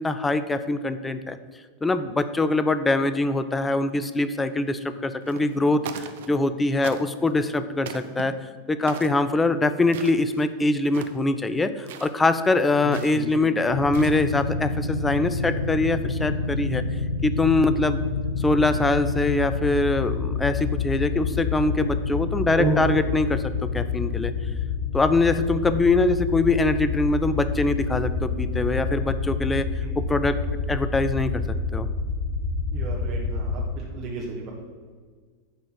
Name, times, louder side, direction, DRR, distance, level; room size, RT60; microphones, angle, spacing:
voice 1, 0.0-1.4 1.8-8.4 8.7-16.8 17.2-18.0 18.4-23.4 23.7-24.3 24.9-29.7 30.0-30.4 30.7-31.4 31.7-31.9, left 2 dB, 10° left, 12 dB, 0.5 m, -23 dB
sound 1, 5.2-5.6 5.8-6.5 6.8-7.3 7.8-8.2 8.9-9.2 9.8-10.5 10.8-11.3 11.8-12.1 12.9-13.3 13.8-14.4, right 8 dB, 55° right, 0.7 m, -39 dB
voice 2, 12.8-13.3 22.5-22.9 29.8-29.9 32.7-34.5, right 3 dB, 35° right, -3 dB, 1.7 m, -30 dB
sound 2, 13.7-33.6, left 4 dB, 60° left, 1.3 m, -28 dB
10.5 x 4.4 x 7.5 m, 1.6 s
figure-of-eight pair, 90°, 0 cm